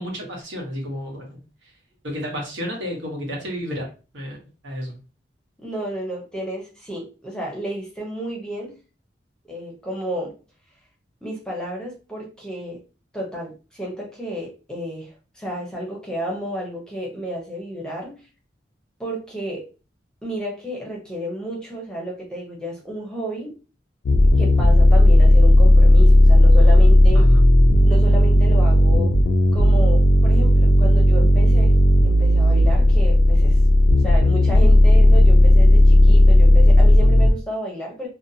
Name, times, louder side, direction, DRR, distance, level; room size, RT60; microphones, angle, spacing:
voice 1, 0.0-1.7 2.0-3.9 4.1-4.4 4.6-5.0 27.1-27.4, equal, 90° right, -1 dB, 1.1 m, -31 dB
voice 2, 5.6-8.7 9.4-10.3 11.2-12.8 13.1-18.2 19.0-19.7 20.2-23.5 24.4-27.3 27.8-29.1 29.5-33.6 34.0-38.1, equal, 5° left, -2 dB, 0.6 m, -32 dB
sound 1, 24.0-37.3, left 1 dB, 60° left, 0.4 m, -13 dB
2.7 x 2.2 x 2.6 m, 0.34 s
head